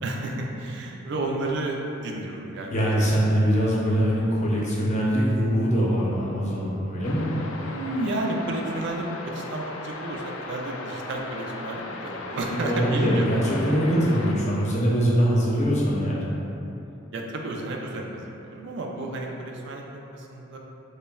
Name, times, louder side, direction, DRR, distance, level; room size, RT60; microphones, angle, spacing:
voice 1, 0.0-2.8 7.5-13.3 16.2-16.4 17.1-20.6, right 2 dB, 60° right, 1 dB, 0.4 m, -32 dB
voice 2, 2.7-7.3 12.5-16.2, equal, 35° left, -5 dB, 0.6 m, -23 dB
sound 1, 7.0-14.4, left 2 dB, 85° left, 0.3 m, -37 dB
5.3 x 2.1 x 2.3 m, 2.9 s
head